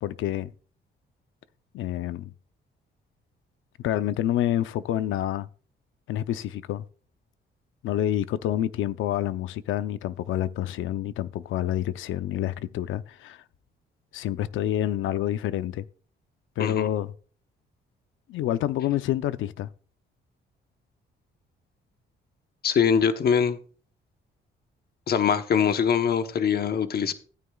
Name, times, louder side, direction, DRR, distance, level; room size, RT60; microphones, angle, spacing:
voice 1, 0.0-0.5 1.7-2.3 3.8-5.5 6.1-6.8 7.8-13.4 14.1-15.9 16.6-17.1 18.3-19.7, left 12 dB, 80° left, 0.6 m, -28 dB
voice 2, 22.6-23.6 25.1-27.1, left 7 dB, 50° left, 1.0 m, -23 dB
14.5 x 9.5 x 2.3 m
cardioid pair, 90°, 20 cm